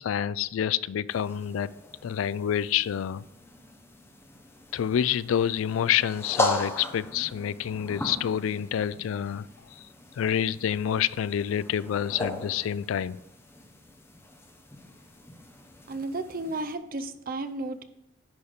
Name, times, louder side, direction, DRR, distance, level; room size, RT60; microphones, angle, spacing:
voice 1, 0.0-1.7 2.0-3.2 4.7-9.5 9.8-9.9 10.2-13.2, left 9 dB, 90° left, 0.3 m, -27 dB
sound 1, 1.1-16.8, left 1 dB, 15° left, 0.9 m, -38 dB
voice 2, 15.9-17.8, right 2 dB, 45° right, 0.6 m, -33 dB
10.5 x 4.1 x 5.1 m
head